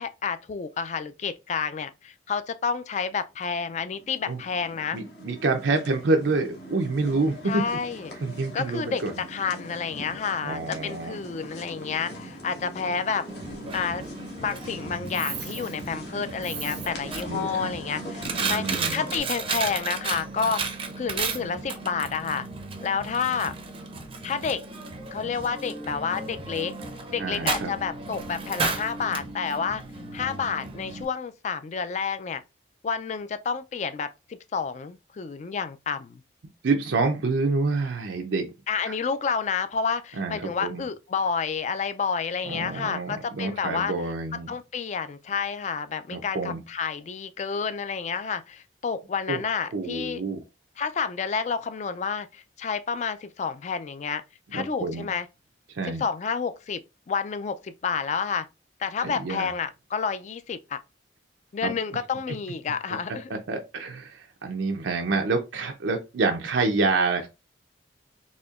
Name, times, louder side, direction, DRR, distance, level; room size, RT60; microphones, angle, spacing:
voice 1, 0.0-5.0 7.4-8.1 8.5-13.3 13.7-14.1 14.4-20.6 21.0-22.5 22.8-23.5 24.2-24.6 25.1-26.7 27.1-29.8 30.1-32.4 32.8-36.2 38.7-43.9 44.5-50.2 50.8-54.2 54.5-55.3 55.8-58.5 58.8-60.8 61.5-63.4, left 6 dB, 40° left, 0.3 m, -30 dB
sound 1, 3.4-19.2, equal, 65° left, 1.1 m, -42 dB
voice 2, 4.9-7.6 8.2-9.1 10.4-11.2 17.3-17.7 18.4-19.0 27.2-27.7 36.6-38.5 38.9-39.0 40.1-40.8 42.4-44.6 46.1-46.6 49.3-49.4 49.7-50.4 54.5-55.1 55.7-56.0 59.0-59.5 61.6-61.7 63.3-67.3, right 3 dB, 85° right, 0.5 m, -27 dB
Coin (dropping), 13.3-31.0, right 4 dB, 30° right, 0.5 m, -34 dB
4.2 x 2.8 x 2.4 m
head